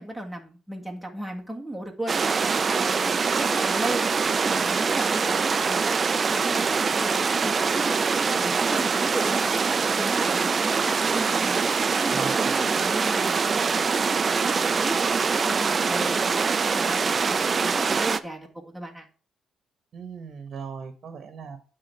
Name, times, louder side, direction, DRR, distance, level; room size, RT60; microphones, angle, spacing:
voice 1, 0.0-4.1 4.4-7.2 7.4-9.6 10.0-19.1, right 1 dB, ahead, 0 dB, 1.8 m, -36 dB
sound 1, 2.1-18.2, right 5 dB, 40° right, 0.4 m, -24 dB
voice 2, 12.1-12.6 19.9-21.6, right 6 dB, 55° right, 8 dB, 1.1 m, -38 dB
8.7 x 3.7 x 5.5 m, 0.38 s
cardioid pair, 90°, 0 cm